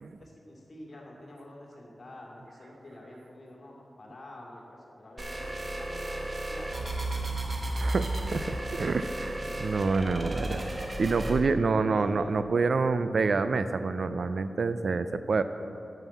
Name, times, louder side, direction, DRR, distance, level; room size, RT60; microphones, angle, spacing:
voice 1, 0.2-6.9 11.8-12.3 15.4-15.5, left 1 dB, 55° left, -2 dB, 2.4 m, -48 dB
sound 1, 5.2-11.4, right 1 dB, 35° right, 1.4 m, -33 dB
voice 2, 7.8-15.4, right 4 dB, 70° right, 11 dB, 0.4 m, -28 dB
11.5 x 5.5 x 7.2 m, 2.8 s
wide cardioid pair, 80°, 0 cm